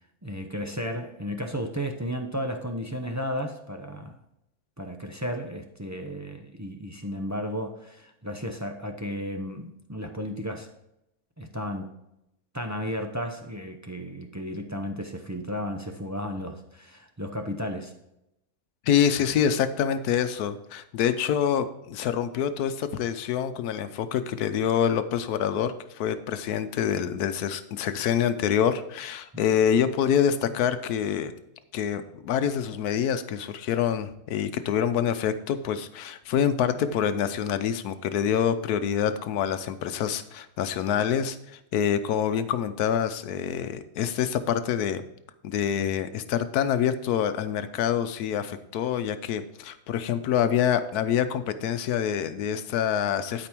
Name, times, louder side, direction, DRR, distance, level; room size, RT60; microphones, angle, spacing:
voice 1, 0.2-4.2 4.8-10.7 11.4-11.9 12.5-17.9 29.3-29.4, equal, 20° right, 4 dB, 0.4 m, -33 dB
voice 2, 18.8-31.3 31.7-45.0 45.4-53.5, left 8 dB, 85° left, 11 dB, 1.2 m, -26 dB
12.0 x 5.1 x 4.5 m, 0.84 s
omnidirectional pair, 1.6 m